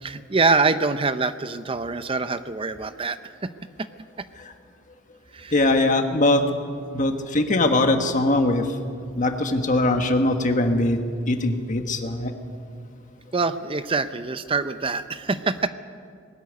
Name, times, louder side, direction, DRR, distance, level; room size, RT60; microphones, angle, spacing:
voice 1, 0.0-3.5 3.8-3.9 5.3-5.6 13.3-15.7, right 4 dB, 30° right, 11 dB, 0.6 m, -25 dB
voice 2, 5.5-6.4 6.9-8.6 9.2-11.0 11.3-12.3, left 2 dB, 40° left, 5 dB, 1.5 m, -21 dB
20.0 x 13.5 x 9.6 m, 2.2 s
head